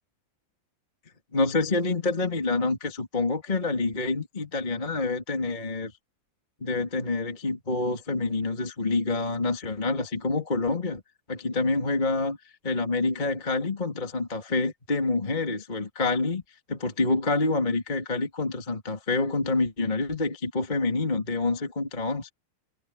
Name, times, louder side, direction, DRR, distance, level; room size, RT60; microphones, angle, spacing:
voice 1, 1.3-5.9 6.6-11.0 11.3-12.4 12.6-16.4 16.7-22.3, left 3 dB, 15° left, 2.2 m, -27 dB
omnidirectional pair, 4.9 m